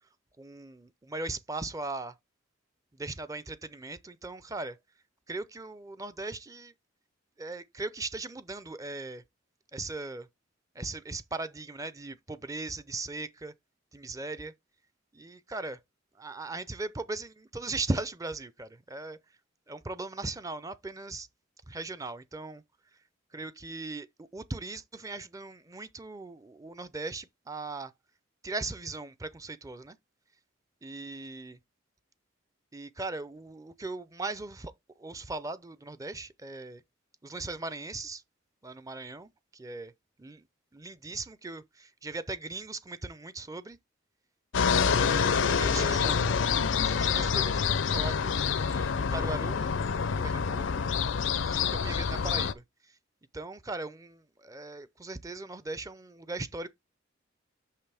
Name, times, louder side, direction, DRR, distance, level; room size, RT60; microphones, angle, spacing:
voice 1, 0.4-2.2 2.9-4.8 5.3-6.7 7.4-9.2 9.7-10.3 10.7-13.5 13.9-14.5 15.1-15.8 16.2-19.2 19.7-21.3 21.7-22.6 23.3-24.1 24.3-27.9 28.4-30.0 30.8-31.6 32.7-36.8 37.2-38.2 38.6-39.9 40.2-40.4 40.7-43.8 44.7-46.2 46.8-50.9 51.4-53.0 53.3-56.7, right 3 dB, 15° right, 0.5 m, -39 dB
sound 1, 44.5-52.5, left 6 dB, 70° left, 0.5 m, -27 dB
sound 2, 45.3-47.3 48.6-50.4, left 3 dB, 90° left, 0.9 m, -45 dB
6.7 x 5.6 x 3.4 m
head